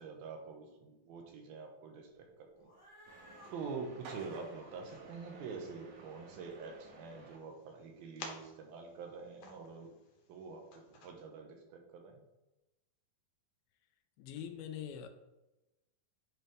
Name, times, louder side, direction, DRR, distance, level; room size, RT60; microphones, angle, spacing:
voice 1, 0.0-2.7 3.5-9.9 10.3-12.3, right 5 dB, 90° right, 3 dB, 2.9 m, -46 dB
Cat, 2.6-7.2, left 1 dB, 30° left, 1.6 m, -62 dB
sound 1, 3.1-7.4, right 2 dB, 65° right, 2.4 m, -54 dB
sound 2, 3.3-11.1, left 4 dB, 60° left, 1.9 m, -56 dB
voice 2, 14.2-15.1, left 9 dB, 90° left, 7 dB, 2.4 m, -43 dB
10.0 x 4.4 x 3.4 m, 1.0 s
omnidirectional pair, 4.2 m